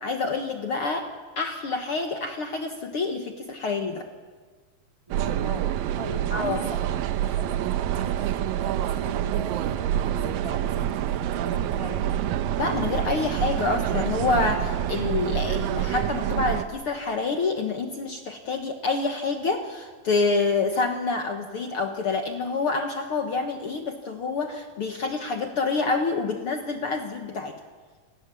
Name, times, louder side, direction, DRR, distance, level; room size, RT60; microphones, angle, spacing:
voice 1, 0.0-1.1 1.4-4.0 6.3-6.6 12.6-27.5, left 4 dB, 60° left, 4 dB, 1.4 m, -27 dB
voice 2, 5.1-5.7 6.0-12.3, right 1 dB, 15° right, 2 dB, 1.1 m, -39 dB
sound 1, 5.1-16.7, right 11 dB, 80° right, 2.5 m, -27 dB
29.0 x 18.0 x 7.0 m, 1.5 s
omnidirectional pair, 4.2 m